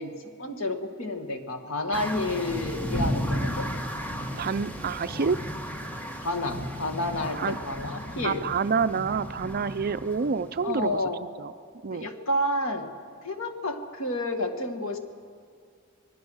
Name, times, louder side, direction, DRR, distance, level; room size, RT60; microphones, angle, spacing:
voice 1, 0.0-3.7 6.2-8.4 10.6-11.2 11.9-12.9 13.2-15.0, left 1 dB, 70° left, 5 dB, 1.8 m, -30 dB
sound 1, 1.9-11.0, equal, 10° left, 1.5 m, -34 dB
voice 2, 4.4-5.4 7.3-7.6 8.2-11.0 11.4-11.5 11.8-12.1, right 5 dB, 45° right, 13 dB, 0.5 m, -28 dB
25.0 x 21.0 x 6.4 m, 2.2 s
head